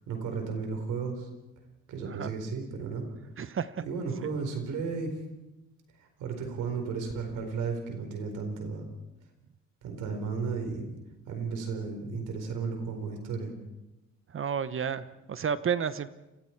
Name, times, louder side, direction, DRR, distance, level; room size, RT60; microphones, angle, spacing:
voice 1, 0.1-1.3 1.9-3.0 3.8-5.1 6.0-8.9 9.8-11.0 11.3-13.5, right 5 dB, 90° right, 4 dB, 4.5 m, -34 dB
voice 2, 3.4-3.8 14.3-16.1, right 7 dB, 45° right, 14 dB, 0.9 m, -31 dB
29.0 x 22.5 x 4.6 m, 0.99 s
cardioid pair, 90°, 30 cm